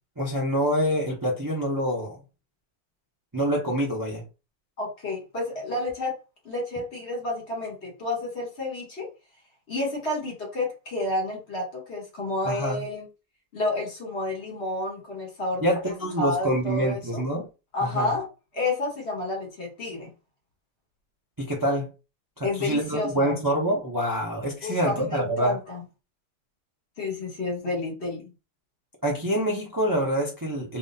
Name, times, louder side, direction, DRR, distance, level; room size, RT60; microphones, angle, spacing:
voice 1, 0.2-2.2 3.3-4.2 12.4-12.8 15.6-17.5 17.8-18.1 21.4-21.9 22.4-25.6 29.0-30.8, right 1 dB, 30° right, 0.4 m, -26 dB
voice 2, 4.8-6.1 6.4-9.1 9.7-13.1 13.5-17.2 17.7-18.3 18.5-20.1 22.4-23.3 24.6-25.8 27.0-28.3, left 2 dB, 40° left, 1.4 m, -30 dB
3.7 x 3.0 x 2.7 m
omnidirectional pair, 1.9 m